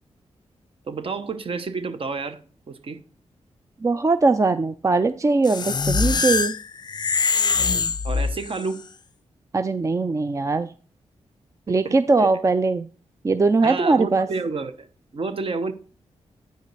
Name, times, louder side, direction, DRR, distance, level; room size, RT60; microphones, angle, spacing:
voice 1, 0.9-2.4 2.7-3.0 8.0-8.8 11.8-11.9 12.2-12.3 13.6-14.9 15.1-15.7, right 4 dB, 50° right, 0.8 m, -29 dB
voice 2, 3.8-6.6 9.5-10.7 11.7-12.9 13.2-14.3, right 3 dB, 25° right, 0.4 m, -20 dB
sound 1, 5.5-8.7, left 5 dB, 40° left, 0.4 m, -23 dB
9.0 x 5.0 x 4.0 m
cardioid pair, 55°, 12 cm